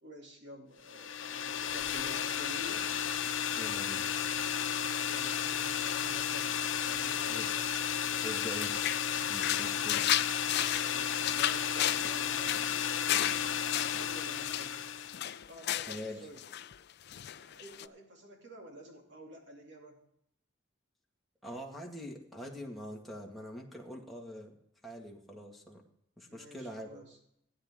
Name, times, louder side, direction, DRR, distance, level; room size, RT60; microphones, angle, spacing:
voice 1, 0.0-2.9 5.1-6.5 6.9-7.7 10.8-12.7 13.8-14.8 15.5-16.4 17.3-20.0 26.3-27.2, equal, 65° right, 1 dB, 2.7 m, -50 dB
sound 1, 0.9-15.3, left 8 dB, 85° left, 0.8 m, -33 dB
voice 2, 3.5-4.0 7.3-7.5 8.2-8.9 9.3-10.0 15.9-16.3 21.4-24.5 24.8-25.8 26.2-26.9, equal, ahead, -2 dB, 1.9 m, -44 dB
sound 2, 8.2-16.1 16.4-16.8 17.1-17.9, left 12 dB, 60° left, 0.4 m, -34 dB
16.0 x 9.7 x 3.7 m, 0.73 s
head